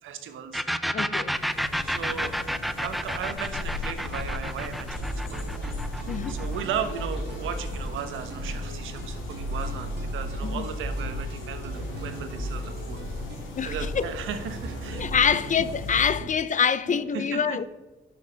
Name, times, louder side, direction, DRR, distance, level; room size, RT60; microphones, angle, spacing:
voice 1, 0.0-0.6 1.8-2.4 2.8-5.9 6.3-13.0 13.7-15.4 16.2-16.3 16.9-17.7, right 7 dB, 80° right, 1.2 m, -36 dB
sound 1, 0.5-8.0, equal, ahead, 0.6 m, -31 dB
voice 2, 0.9-1.4 6.1-6.4 10.4-10.7 13.6-14.1 14.9-17.7, left 7 dB, 40° left, 0.6 m, -25 dB
Small babbling brook, 1.2-16.3, left 3 dB, 90° left, 2.7 m, -38 dB
sound 2, 5.0-15.6, right 1 dB, 60° right, 2.0 m, -35 dB
10.5 x 6.6 x 5.2 m
cardioid pair, 90°, 20 cm